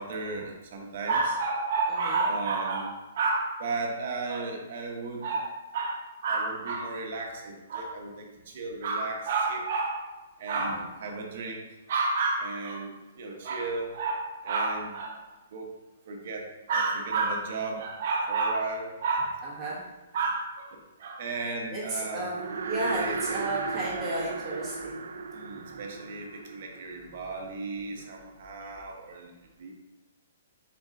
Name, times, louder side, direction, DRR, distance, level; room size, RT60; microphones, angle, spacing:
voice 1, 0.0-10.0 10.4-11.6 11.9-15.2 15.5-15.7 16.1-19.8 20.1-22.3 22.7-23.7 24.6-24.8 25.3-29.3 29.6-29.7, right 3 dB, 45° right, 1 dB, 0.8 m, -32 dB
voice 2, 21.7-25.1, right 1 dB, 15° right, -7 dB, 1.0 m, -33 dB
sound 1, 22.1-27.5, right 5 dB, 85° right, 0.4 m, -36 dB
4.2 x 3.2 x 3.6 m, 1.1 s
hypercardioid pair, 175°, 0 cm